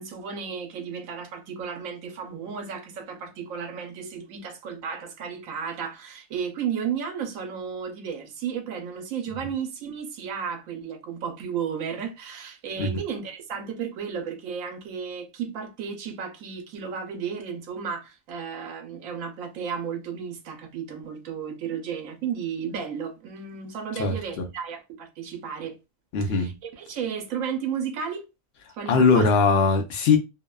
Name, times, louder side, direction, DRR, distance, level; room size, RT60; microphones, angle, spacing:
voice 1, 0.0-25.8 26.2-28.2 28.7-29.4, right 7 dB, 80° right, 1.0 m, -33 dB
voice 2, 24.0-24.5 26.1-26.5 28.9-30.2, left 4 dB, 60° left, 0.7 m, -20 dB
2.7 x 2.1 x 2.2 m
omnidirectional pair, 1.4 m